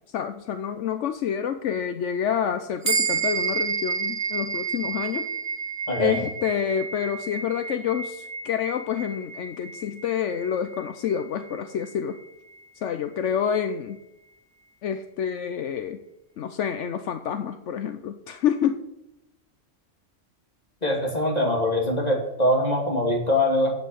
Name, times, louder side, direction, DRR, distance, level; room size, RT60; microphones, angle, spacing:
voice 1, 0.1-5.3 6.0-12.2 12.8-14.0 14.8-16.0 16.4-18.8, left 8 dB, 75° left, 8 dB, 1.0 m, -28 dB
bell-meditation cleaned, 2.8-12.6, right 5 dB, 55° right, 2.6 m, -31 dB
voice 2, 5.9-6.2 20.8-23.7, left 1 dB, 30° left, -1 dB, 2.9 m, -23 dB
9.3 x 7.7 x 6.9 m, 0.87 s
omnidirectional pair, 1.3 m